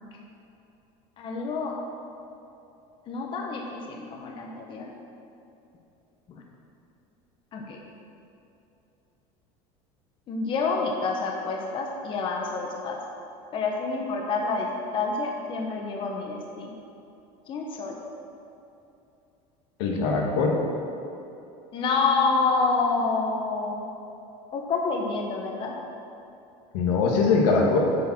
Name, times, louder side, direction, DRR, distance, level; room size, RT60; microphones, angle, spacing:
voice 1, 1.2-1.7 3.1-4.9 6.3-6.4 7.5-7.8 10.3-13.0 13.5-16.7 17.5-18.0 21.7-23.8 24.5-25.7, left 4 dB, 35° left, 0 dB, 1.1 m, -28 dB
voice 2, 19.8-20.6 26.7-27.8, left 4 dB, 90° left, -1 dB, 1.7 m, -22 dB
8.3 x 7.3 x 6.0 m, 2.8 s
cardioid pair, 145°, 14 cm